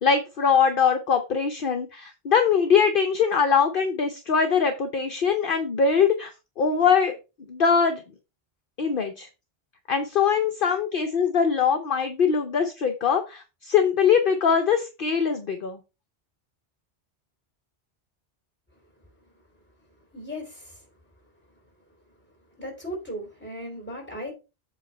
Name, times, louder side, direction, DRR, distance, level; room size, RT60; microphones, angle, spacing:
voice 1, 0.0-6.3 6.6-7.2 7.5-8.0 8.8-9.3 9.9-15.8, left 6 dB, 55° left, 6 dB, 0.9 m, -22 dB
voice 2, 20.1-20.8 22.6-24.3, equal, 10° left, -1 dB, 3.5 m, -36 dB
8.0 x 3.3 x 5.4 m, 0.29 s
omnidirectional pair, 1.1 m